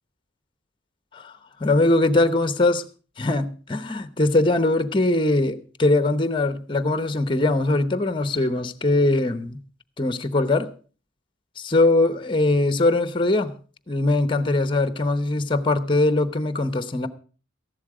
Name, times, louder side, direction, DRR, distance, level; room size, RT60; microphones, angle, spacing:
voice 1, 1.6-2.9 3.2-9.6 10.0-10.7 11.6-13.5 13.9-17.1, left 2 dB, 25° left, 0.8 m, -21 dB
14.0 x 11.5 x 4.9 m
head